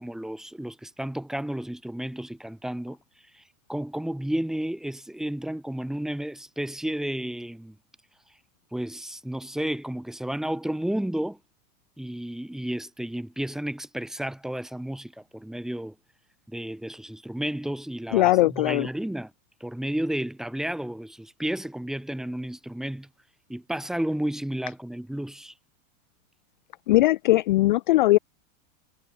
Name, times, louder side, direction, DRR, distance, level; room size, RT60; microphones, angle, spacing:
voice 1, 0.0-3.0 3.3-3.4 3.7-7.7 8.7-11.4 12.0-15.9 16.5-19.3 19.6-23.1 23.5-25.5, right 1 dB, ahead, 1.5 m, -32 dB
voice 2, 18.1-18.9 26.9-28.2, left 17 dB, 35° left, 0.4 m, -19 dB
supercardioid pair, 170°, 41 cm